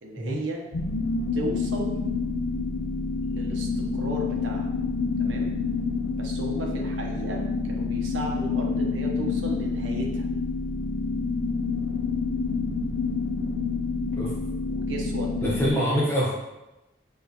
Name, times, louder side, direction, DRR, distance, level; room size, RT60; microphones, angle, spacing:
voice 1, 0.0-0.6 1.3-2.0 3.2-4.7 5.2-5.5 6.2-10.3 14.7-15.3 15.7-15.8, right 1 dB, 85° right, 0 dB, 0.7 m, -35 dB
sound 1, 0.7-15.7, left 4 dB, 80° left, 0.4 m, -28 dB
voice 2, 15.4-16.3, equal, 15° left, -6 dB, 0.9 m, -24 dB
6.2 x 2.4 x 2.8 m, 0.99 s
head